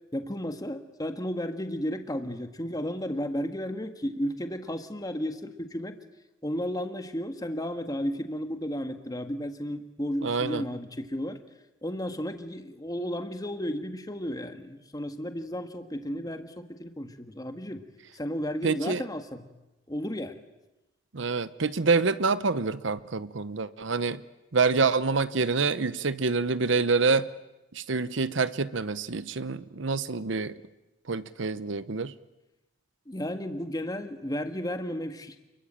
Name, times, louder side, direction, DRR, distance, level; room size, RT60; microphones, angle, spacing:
voice 1, 0.1-6.0 6.4-11.4 11.8-17.8 18.1-19.5 19.9-20.4 33.1-35.4, equal, 20° left, 7 dB, 1.7 m, -33 dB
voice 2, 10.2-10.6 18.6-19.0 21.1-24.2 24.5-27.3 27.7-30.5 31.1-32.1, right 4 dB, 65° right, 15 dB, 0.9 m, -26 dB
28.5 x 22.0 x 8.9 m, 1.0 s
head